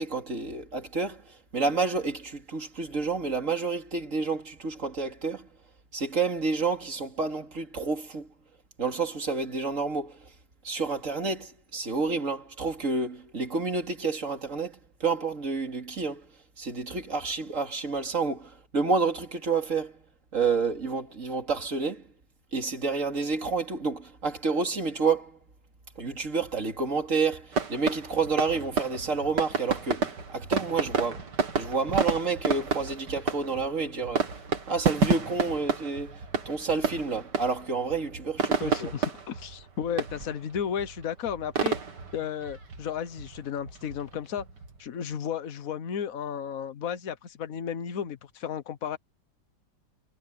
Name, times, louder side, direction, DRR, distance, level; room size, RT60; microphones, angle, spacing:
voice 1, 0.0-5.5 5.9-8.3 8.8-10.2 10.6-16.2 16.6-19.9 20.3-22.0 22.5-25.4 26.0-31.3 31.6-34.3 34.7-36.2 36.4-38.9, right 4 dB, 45° right, 3.4 m, -29 dB
sound 1, 27.5-45.1, right 5 dB, 75° right, 2.9 m, -31 dB
voice 2, 38.6-41.8 42.1-44.5 44.8-49.0, left 8 dB, 55° left, 1.5 m, -33 dB
omnidirectional pair, 1.9 m